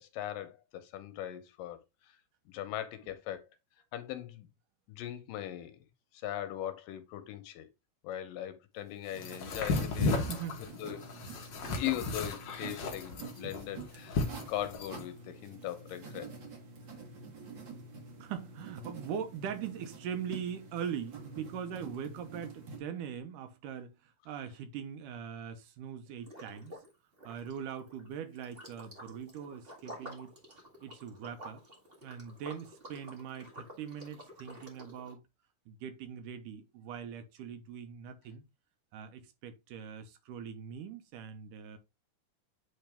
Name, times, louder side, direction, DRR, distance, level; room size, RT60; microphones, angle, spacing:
voice 1, 0.0-1.8 2.5-3.5 3.9-4.5 4.9-5.8 6.2-7.7 8.0-10.1 10.8-11.1 11.7-16.3, left 12 dB, 85° left, 2.6 m, -39 dB
sound 1, 9.1-22.8, right 4 dB, 50° right, 1.4 m, -48 dB
sound 2, 9.2-15.0, left 3 dB, 65° left, 1.1 m, -34 dB
voice 2, 10.1-10.6 11.1-11.2 11.6-11.8 18.2-26.8 27.2-30.3 30.8-31.6 32.0-35.2 35.7-38.4 38.9-41.8, right 8 dB, 80° right, 2.4 m, -41 dB
Liquid, 26.2-26.9 27.2-35.1, equal, 30° right, 1.2 m, -50 dB
8.9 x 3.6 x 3.4 m
omnidirectional pair, 3.8 m